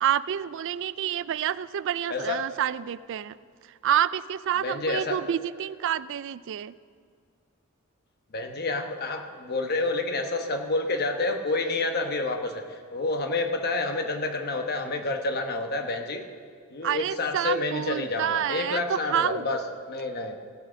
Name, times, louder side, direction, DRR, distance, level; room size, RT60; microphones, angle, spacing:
voice 1, 0.0-3.4 3.8-6.7 16.8-19.5, right 10 dB, 60° right, 17 dB, 0.3 m, -28 dB
voice 2, 2.1-2.4 4.6-5.2 8.3-16.3 16.7-20.3, left 3 dB, 50° left, 5 dB, 1.1 m, -29 dB
16.5 x 6.2 x 6.3 m, 2.1 s
head